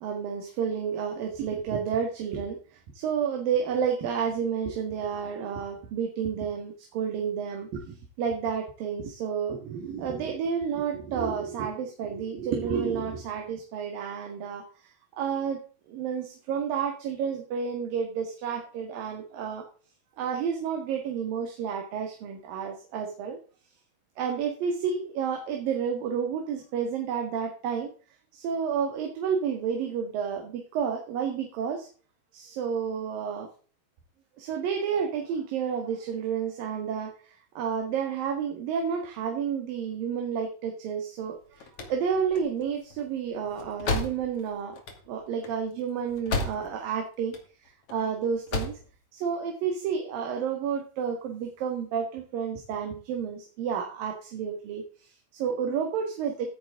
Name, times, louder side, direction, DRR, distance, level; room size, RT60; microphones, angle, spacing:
voice 1, 0.0-14.9 15.2-15.6 15.9-19.6 20.2-23.4 24.2-27.9 28.3-31.9 32.3-33.5 34.4-44.8 45.1-47.4 47.6-48.8 49.1-56.5, right 7 dB, 80° right, 3 dB, 3.6 m, -30 dB
sound 1, 41.3-46.9 47.2-47.9 48.3-48.9, left 3 dB, 45° left, 3.0 m, -33 dB
16.0 x 9.3 x 3.7 m, 0.39 s
omnidirectional pair, 4.0 m